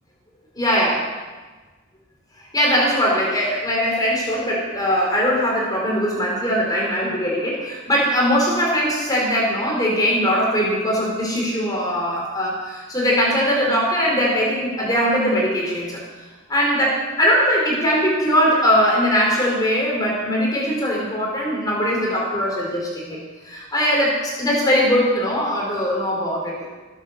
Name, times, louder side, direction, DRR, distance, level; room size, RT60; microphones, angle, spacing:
voice 1, 0.6-1.0 2.5-16.0 16.5-23.2 23.4-26.7, equal, 20° left, -3 dB, 4.4 m, -20 dB
18.5 x 8.3 x 6.8 m, 1.3 s
head